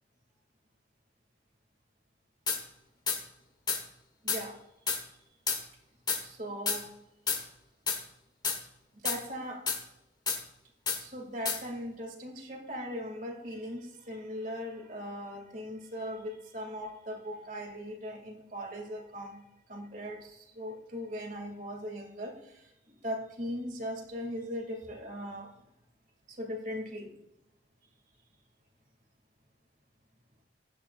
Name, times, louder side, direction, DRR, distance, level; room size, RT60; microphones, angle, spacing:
sound 1, 2.5-2.6 3.1-3.2 3.7-3.8 4.3-4.4 4.9-5.0 5.5-5.6 6.1-6.2 6.7-6.8 7.3-7.4 7.9-8.0 8.4-8.6 9.0-9.2 9.7-9.8 10.3-10.4 10.9-11.0 11.4-11.6, left 5 dB, 25° left, 1.4 m, -30 dB
voice 1, 4.2-4.6 6.2-6.9 8.9-9.6 10.9-19.4 19.7-25.5 26.3-27.1, equal, 45° right, 3 dB, 2.4 m, -39 dB
16.0 x 11.0 x 2.5 m, 0.89 s
head